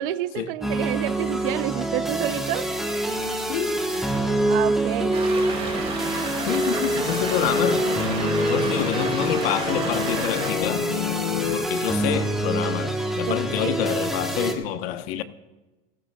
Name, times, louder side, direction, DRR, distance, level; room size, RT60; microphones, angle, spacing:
voice 1, 0.0-2.7 4.4-5.2 13.3-13.8, right 15 dB, 60° right, 0.6 m, -29 dB
sound 1, 0.6-14.5, right 1 dB, ahead, 1.1 m, -26 dB
voice 2, 3.5-3.8 6.4-7.9 8.5-10.9 11.5-15.2, left 10 dB, 75° left, 1.0 m, -27 dB
sound 2, 5.1-10.5, right 4 dB, 20° right, 2.2 m, -33 dB
sound 3, 5.4-11.6, left 10 dB, 45° left, 0.9 m, -32 dB
19.5 x 15.0 x 2.3 m
cardioid pair, 175°, 30 cm